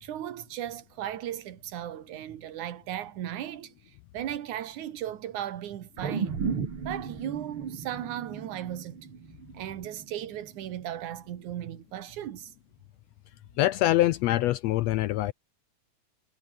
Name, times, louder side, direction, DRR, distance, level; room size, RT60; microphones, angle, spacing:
voice 1, 0.0-3.7 4.1-6.4 6.8-9.1 9.5-12.5, right 11 dB, 80° right, 3.0 m, -36 dB
sound 1, 6.0-10.5 10.9-11.0, right 6 dB, 45° right, 3.1 m, -35 dB
voice 2, 13.6-15.3, left 15 dB, 75° left, 1.7 m, -24 dB
omnidirectional pair, 3.4 m